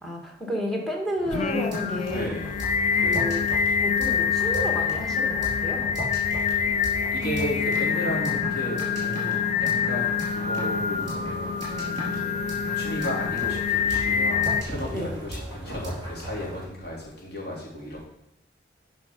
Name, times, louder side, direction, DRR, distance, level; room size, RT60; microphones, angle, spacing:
voice 1, 0.0-2.3 2.9-3.5 3.8-5.9 7.9-8.1 14.9-15.2, equal, ahead, 0 dB, 1.6 m, -31 dB
sound 1, 1.2-16.6, equal, 30° right, 3.5 m, -36 dB
Singing, 1.3-14.6, left 7 dB, 40° left, 0.4 m, -26 dB
voice 2, 2.1-2.7 3.0-3.4 7.2-12.4 12.8-18.0, equal, 65° left, -5 dB, 3.7 m, -34 dB
9.5 x 5.7 x 5.1 m, 0.82 s
head